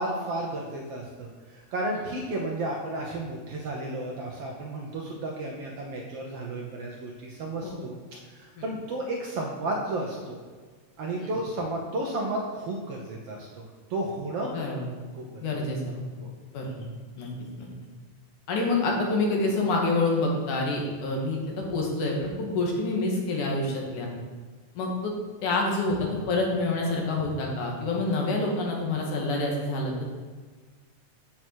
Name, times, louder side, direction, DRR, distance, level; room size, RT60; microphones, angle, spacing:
voice 1, 0.0-8.0 8.3-10.4 11.0-13.6 13.9-14.5 15.1-15.3 16.2-16.3, right 2 dB, 65° right, -1 dB, 1.6 m, -32 dB
voice 2, 14.5-14.9 15.4-16.0 16.5-16.8 17.2-17.3 17.6-17.7 18.5-24.1 24.8-25.1 25.4-30.1, left 2 dB, 75° left, -1 dB, 3.0 m, -27 dB
7.8 x 7.3 x 4.5 m, 1.5 s
omnidirectional pair, 3.7 m